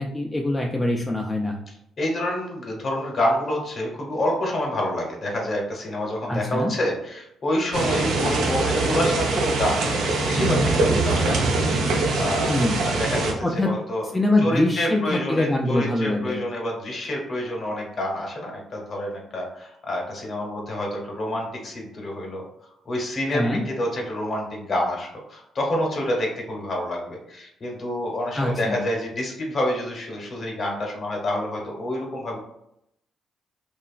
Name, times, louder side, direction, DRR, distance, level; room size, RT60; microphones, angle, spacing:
voice 1, 0.0-1.6 6.3-6.7 12.5-12.8 13.4-13.8 14.1-16.4 23.3-23.6 28.3-28.8, left 1 dB, 10° left, 0 dB, 0.3 m, -23 dB
voice 2, 2.0-14.0 14.4-22.4 22.8-32.4, left 1 dB, 45° left, 0 dB, 0.9 m, -28 dB
sound 1, 7.7-13.3, right 2 dB, 80° right, 0.5 m, -23 dB
2.8 x 2.3 x 2.3 m, 0.79 s
cardioid pair, 90°, 0 cm